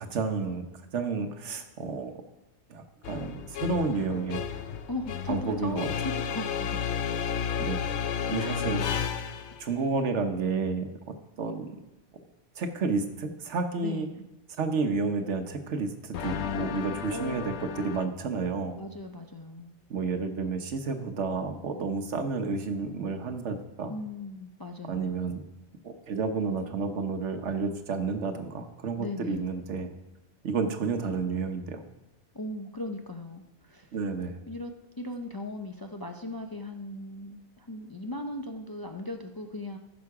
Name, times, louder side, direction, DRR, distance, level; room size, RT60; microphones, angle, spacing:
voice 1, 0.1-0.6 0.9-2.1 2.7-4.4 5.3-5.9 7.6-7.8 8.3-8.8 9.6-11.8 12.6-14.1 14.6-18.8 19.9-23.9 24.9-25.4 25.8-29.9 30.4-31.8 33.9-34.4, right 4 dB, 85° right, 7 dB, 1.3 m, -31 dB
sound 1, 3.0-9.7 16.1-18.1, left 7 dB, 75° left, 0.9 m, -32 dB
voice 2, 4.9-6.8 8.4-8.7 13.8-14.3 17.1-17.8 18.8-19.7 23.9-25.1 29.0-29.5 32.3-33.9 34.5-34.7 35.0-39.8, left 2 dB, 30° left, 4 dB, 0.4 m, -38 dB
14.5 x 6.2 x 4.8 m, 0.94 s
omnidirectional pair, 1.2 m